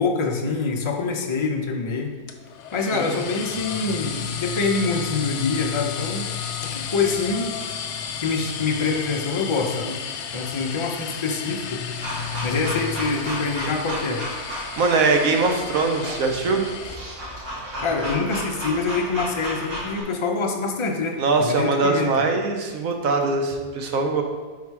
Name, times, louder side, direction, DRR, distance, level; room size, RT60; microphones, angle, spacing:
voice 1, 0.0-2.1 2.7-6.3 6.6-7.6 8.2-10.0 10.3-11.9 12.4-14.2 17.8-22.1, left 4 dB, 50° left, 2 dB, 0.3 m, -25 dB
sound 1, 2.3-17.0, left 7 dB, 65° left, 0.8 m, -32 dB
voice 2, 2.9-3.2 14.8-16.7 21.2-24.2, right 3 dB, 70° right, 3 dB, 1.1 m, -22 dB
sound 2, 12.0-20.0, equal, 90° right, 2.2 m, -33 dB
5.4 x 4.7 x 4.7 m, 1.4 s
omnidirectional pair, 1.6 m